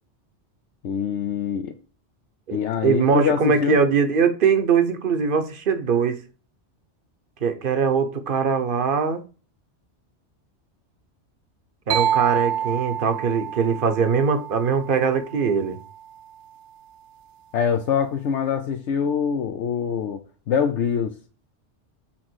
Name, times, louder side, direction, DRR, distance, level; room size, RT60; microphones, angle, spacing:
voice 1, 0.8-1.7 2.5-3.8 17.5-21.1, left 7 dB, 75° left, 1.0 m, -24 dB
voice 2, 2.5-6.2 7.4-9.2 11.9-15.8, right 6 dB, 50° right, 1.1 m, -21 dB
sound 1, 11.9-15.6, right 10 dB, 80° right, 0.9 m, -27 dB
7.5 x 3.7 x 6.1 m
omnidirectional pair, 1.2 m